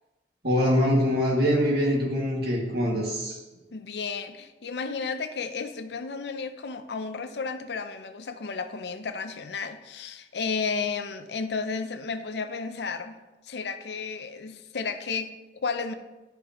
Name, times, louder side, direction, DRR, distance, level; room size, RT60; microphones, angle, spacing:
voice 1, 0.4-3.4, equal, 60° right, -2 dB, 2.1 m, -24 dB
voice 2, 3.7-13.2 13.4-15.9, left 5 dB, 70° left, 9 dB, 0.6 m, -33 dB
11.5 x 4.9 x 3.0 m, 1.1 s
head